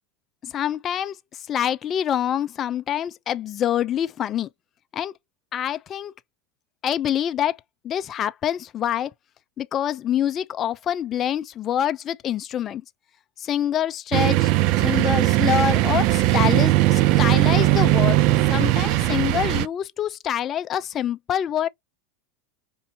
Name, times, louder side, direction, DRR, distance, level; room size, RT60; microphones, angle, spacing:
voice 1, 0.4-4.5 4.9-5.1 5.5-6.1 6.8-7.6 7.8-9.1 9.6-12.8 13.4-14.5 14.8-18.2 18.5-21.7, left 10 dB, 30° left, 0.4 m, -26 dB
sound 1, 14.1-19.7, right 16 dB, 50° right, 0.3 m, -19 dB
4.5 x 2.7 x 2.7 m
supercardioid pair, 140°, 0 cm